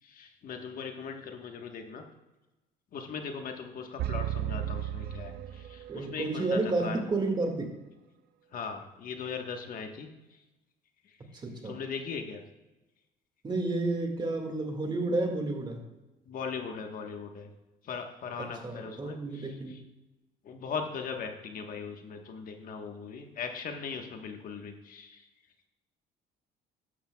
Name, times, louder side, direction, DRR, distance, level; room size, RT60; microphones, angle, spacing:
voice 1, 0.0-2.0 2.9-7.0 8.5-10.4 11.0-11.2 11.6-12.4 16.2-17.5 17.8-19.8 20.4-25.3, left 5 dB, 55° left, 4 dB, 1.3 m, -39 dB
sound 1, 4.0-6.1, right 11 dB, 65° right, 0.6 m, -34 dB
voice 2, 5.9-7.7 11.4-11.7 13.4-15.8 18.6-19.8, right 2 dB, 25° right, 3 dB, 1.9 m, -31 dB
13.5 x 11.5 x 2.3 m, 1.0 s
cardioid pair, 110°, 17 cm